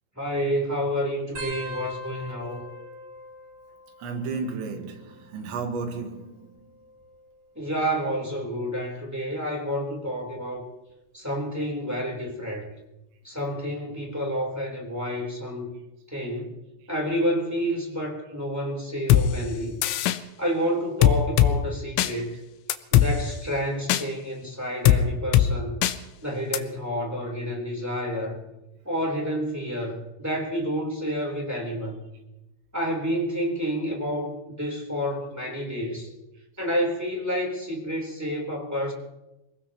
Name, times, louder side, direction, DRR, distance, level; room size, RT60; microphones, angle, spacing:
voice 1, 0.2-2.6 7.5-10.7 11.1-12.7 13.2-15.7 16.1-16.5 16.9-19.8 20.4-22.4 22.9-25.8 26.2-28.4 28.8-32.1 32.7-36.1 36.6-38.9, equal, 5° right, 2.6 m, -29 dB
sound 1, 1.4-4.5 4.8-5.4 6.4-7.9 8.5-8.8 10.1-10.4 11.9-12.0, equal, 45° right, 4.9 m, -42 dB
voice 2, 4.0-6.5, right 4 dB, 75° right, 3.8 m, -33 dB
sound 2, 19.1-19.3 19.8-20.2 21.0-21.5 22.0-22.1 22.7-23.1 23.9-24.0 24.9-25.0 25.3-25.5 25.8-26.0 26.5-26.6, left 13 dB, 80° left, 3.1 m, -18 dB
27.0 x 18.0 x 3.0 m
omnidirectional pair, 5.4 m